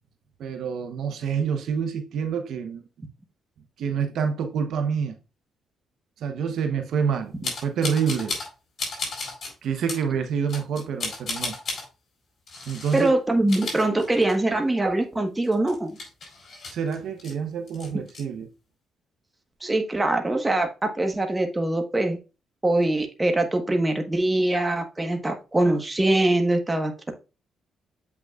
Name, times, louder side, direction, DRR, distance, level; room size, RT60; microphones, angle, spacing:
voice 1, 0.4-2.8 3.8-5.1 6.2-8.4 9.6-11.5 12.7-13.1 16.7-18.5, right 6 dB, 70° right, 1.0 m, -27 dB
sound 1, 7.4-8.5 8.8-9.5 9.9-10.0 10.5-11.8 12.5-13.1 13.4-14.6 14.9-15.0 15.4-17.3 17.7-18.2, left 3 dB, 50° left, 4.4 m, -34 dB
voice 2, 12.9-16.0 19.6-22.2 22.6-26.9, right 2 dB, 15° right, 1.4 m, -23 dB
7.7 x 5.9 x 2.5 m
cardioid pair, 90°, 0 cm